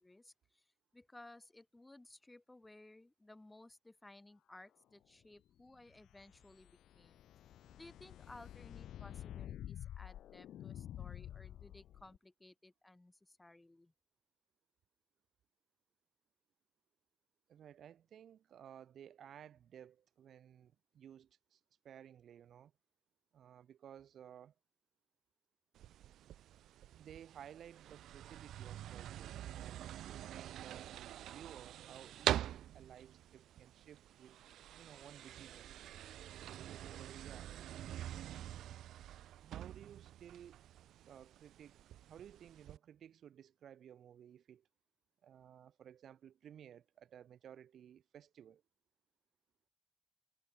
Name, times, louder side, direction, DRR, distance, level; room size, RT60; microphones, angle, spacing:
voice 1, 0.0-7.3 7.7-13.9, left 2 dB, 10° left, 3.2 m, -59 dB
sound 1, 5.8-12.2, left 11 dB, 80° left, 1.0 m, -50 dB
voice 2, 17.5-22.7 23.3-24.5 27.0-31.0 31.3-34.4 34.8-35.7 36.6-37.5 39.4-40.6 41.1-44.7 45.2-48.6, right 9 dB, 60° right, 7.2 m, -56 dB
sound 2, 25.7-42.8, right 12 dB, 90° right, 4.2 m, -45 dB
cardioid pair, 145°, 0 cm